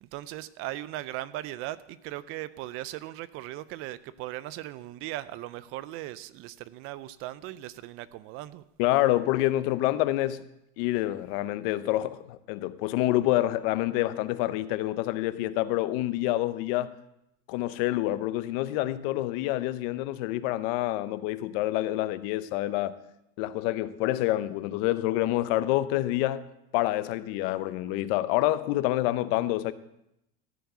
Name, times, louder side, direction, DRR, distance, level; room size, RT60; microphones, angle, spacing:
voice 1, 0.0-8.6, right 15 dB, 45° right, 0.4 m, -38 dB
voice 2, 8.8-10.4 10.8-16.9 17.5-23.0 23.4-26.5 26.7-29.7, left 15 dB, 60° left, 0.7 m, -27 dB
14.0 x 4.7 x 7.9 m
supercardioid pair, 150°, 32 cm